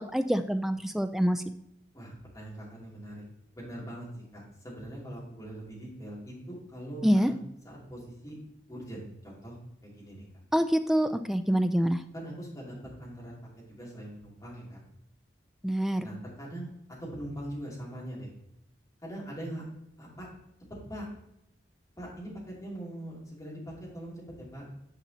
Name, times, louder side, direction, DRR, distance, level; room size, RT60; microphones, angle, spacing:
voice 1, 0.1-1.4 7.0-7.3 10.5-12.0 15.6-16.1, equal, ahead, 8 dB, 0.3 m, -26 dB
voice 2, 1.9-3.2 3.5-4.1 4.3-7.3 7.6-8.4 8.7-10.3 12.1-13.4 13.7-14.8 16.0-16.7 17.0-18.3 19.0-19.6 20.0-20.3 20.9-21.1 22.0-24.7, right 1 dB, 20° left, -6 dB, 2.7 m, -42 dB
9.8 x 5.4 x 2.9 m, 0.78 s
head